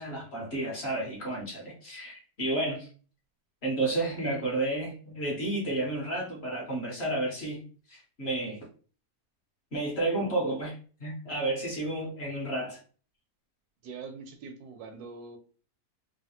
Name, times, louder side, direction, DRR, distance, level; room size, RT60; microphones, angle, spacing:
voice 1, 0.0-2.9 3.6-7.6 7.9-8.6 9.7-12.8, right 2 dB, 45° left, 1.1 m, -31 dB
voice 2, 13.8-15.4, right 4 dB, 80° right, 1.1 m, -43 dB
3.2 x 2.2 x 2.8 m
omnidirectional pair, 1.6 m